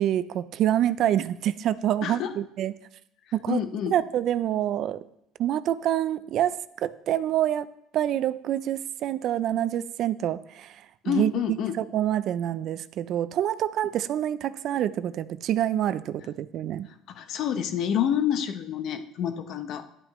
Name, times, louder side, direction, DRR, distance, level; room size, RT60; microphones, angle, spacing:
voice 1, 0.0-2.7 3.3-3.6 3.9-5.0 5.4-10.7 11.1-11.3 11.7-16.9, right 11 dB, 50° right, 16 dB, 0.3 m, -26 dB
voice 2, 2.0-2.3 3.5-3.9 11.0-11.8 17.1-19.8, left 9 dB, 55° left, 9 dB, 0.8 m, -28 dB
10.5 x 9.1 x 3.1 m, 0.75 s
cardioid pair, 135°, 0 cm